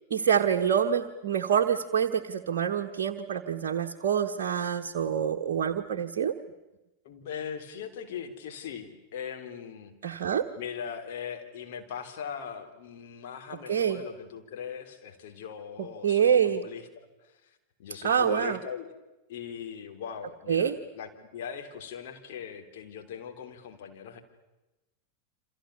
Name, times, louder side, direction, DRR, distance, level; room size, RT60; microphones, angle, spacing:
voice 1, 0.1-6.3 10.0-10.5 13.7-14.0 16.0-16.6 18.0-18.6 20.5-20.8, right 8 dB, 55° right, 3 dB, 1.3 m, -26 dB
voice 2, 7.0-18.9 19.3-24.2, left 7 dB, 55° left, 5 dB, 3.6 m, -40 dB
28.5 x 27.0 x 7.0 m, 1.0 s
figure-of-eight pair, 90°, 0 cm